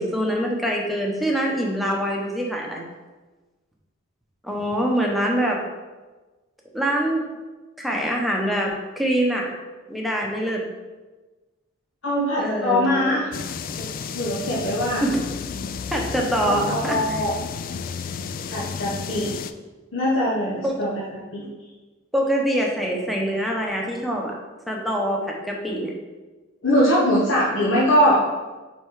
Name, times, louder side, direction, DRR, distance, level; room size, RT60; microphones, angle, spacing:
voice 1, 0.0-2.8 4.4-5.6 6.7-7.2 7.8-9.5 9.9-10.6 12.4-13.2 15.0-15.2 15.9-17.2 20.6-20.8 22.1-24.3 24.7-25.9, equal, ahead, -1 dB, 0.9 m, -24 dB
voice 2, 12.0-13.2 13.8-13.9 14.1-15.0 16.4-17.3 18.5-19.3 19.9-20.9 21.3-21.4 26.6-28.3, equal, 70° left, -7 dB, 1.2 m, -21 dB
sound 1, 13.3-19.5, left 6 dB, 45° left, 0.3 m, -32 dB
5.3 x 4.4 x 4.8 m, 1.2 s
head